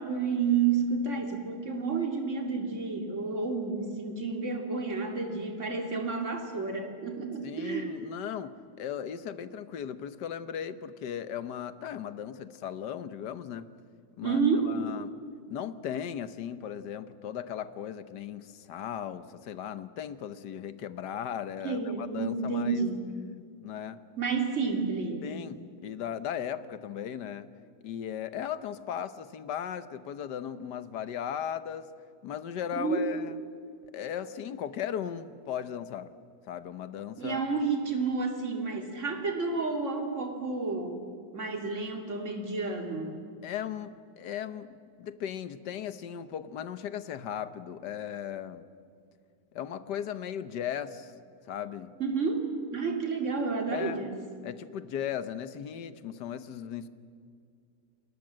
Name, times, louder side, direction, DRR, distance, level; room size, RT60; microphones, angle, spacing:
voice 1, 0.0-7.9 14.2-14.7 21.6-23.1 24.2-25.3 32.7-33.0 37.2-41.0 41.3-43.2 52.0-54.2, right 4 dB, 45° right, 3 dB, 3.0 m, -30 dB
voice 2, 7.4-13.7 14.2-14.4 14.6-15.1 15.5-22.8 23.6-24.0 25.2-27.5 27.8-31.9 32.2-33.3 33.9-36.1 36.5-37.4 43.4-48.6 49.5-51.1 51.5-51.9 53.7-54.0 54.4-56.9, left 9 dB, 85° left, 13 dB, 1.6 m, -37 dB
28.5 x 21.0 x 7.6 m, 2.3 s
omnidirectional pair, 1.8 m